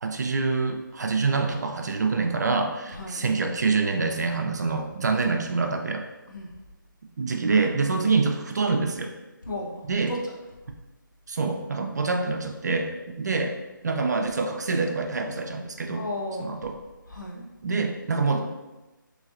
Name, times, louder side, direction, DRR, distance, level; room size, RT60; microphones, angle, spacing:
voice 1, 0.0-6.0 7.2-9.1 9.9-10.1 11.3-13.6 13.8-16.0 16.4-16.7 17.6-18.5, right 4 dB, 55° right, 4 dB, 0.4 m, -26 dB
voice 2, 2.9-3.2 6.3-6.5 9.4-9.7 10.1-10.3 16.0-16.6 17.1-17.4, left 1 dB, 65° left, -1 dB, 0.8 m, -34 dB
3.2 x 3.1 x 2.5 m, 1.1 s
figure-of-eight pair, 155°, 11 cm